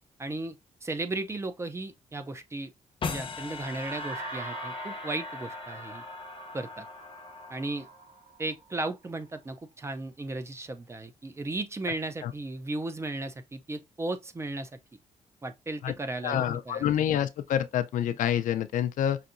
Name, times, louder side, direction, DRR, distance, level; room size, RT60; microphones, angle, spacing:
voice 1, 0.2-0.6 0.8-2.7 3.1-6.0 6.5-6.9 7.5-7.9 8.4-14.8 15.4-16.9, right 2 dB, 20° right, 0.6 m, -35 dB
sound 1, 3.0-8.2, left 5 dB, 40° left, 0.8 m, -39 dB
sound 2, 3.6-9.5, right 5 dB, 55° right, 1.1 m, -44 dB
voice 2, 16.2-19.2, left 10 dB, 80° left, 0.5 m, -27 dB
5.7 x 2.7 x 2.5 m
cardioid pair, 120°, 13 cm